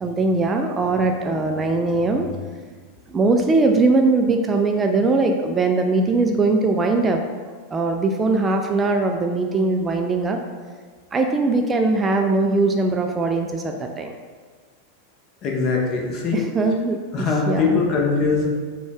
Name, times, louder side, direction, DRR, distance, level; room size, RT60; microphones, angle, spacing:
voice 1, 0.0-2.3 3.1-7.2 7.7-10.4 11.1-14.1 16.3-17.8, right 3 dB, 15° right, 3 dB, 0.3 m, -20 dB
voice 2, 15.4-16.4 17.1-18.5, left 4 dB, 35° left, -1 dB, 0.8 m, -21 dB
6.0 x 2.3 x 3.4 m, 1.5 s
figure-of-eight pair, 90°, 0 cm